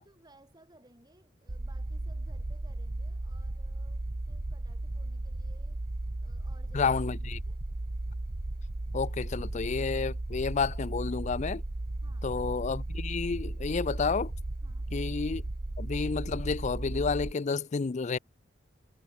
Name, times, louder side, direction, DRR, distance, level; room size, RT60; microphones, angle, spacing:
voice 1, 0.0-5.8 6.2-7.6 12.0-12.3 14.6-14.9, right 1 dB, 20° right, 7.8 m, -61 dB
sound 1, 1.5-17.3, right 2 dB, 55° right, 1.1 m, -35 dB
voice 2, 6.7-7.4 8.9-11.6 12.2-14.3 14.9-15.4 15.8-18.2, left 5 dB, 40° left, 0.4 m, -30 dB
head